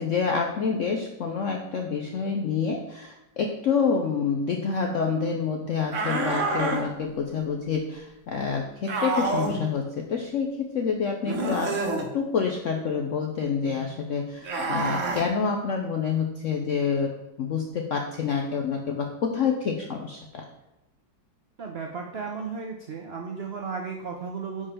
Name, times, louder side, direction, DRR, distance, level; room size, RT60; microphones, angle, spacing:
voice 1, 0.0-11.8 12.1-17.1 17.4-20.5, left 5 dB, 70° left, 2 dB, 0.7 m, -27 dB
sound 1, 5.9-6.8 8.9-9.6 11.2-12.1 14.4-15.2, right 2 dB, 50° right, 1.1 m, -27 dB
voice 2, 21.6-24.7, right 5 dB, 70° right, 2 dB, 0.5 m, -34 dB
4.9 x 4.8 x 5.6 m, 0.93 s
omnidirectional pair, 2.0 m